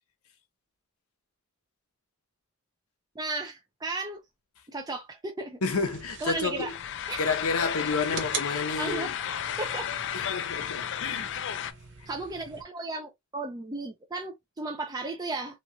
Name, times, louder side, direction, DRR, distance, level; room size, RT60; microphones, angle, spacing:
voice 1, 3.2-4.2 4.7-5.6 6.2-6.7 7.1-7.3 8.8-9.9 12.1-15.6, right 3 dB, 15° right, 0.5 m, -35 dB
voice 2, 5.6-6.7 7.2-9.1 10.1-11.7, left 4 dB, 75° left, 0.9 m, -30 dB
sound 1, 5.6-12.6, right 5 dB, 55° right, 0.7 m, -43 dB
sound 2, 6.7-11.7, left 10 dB, 55° left, 0.4 m, -33 dB
3.1 x 2.9 x 2.5 m
head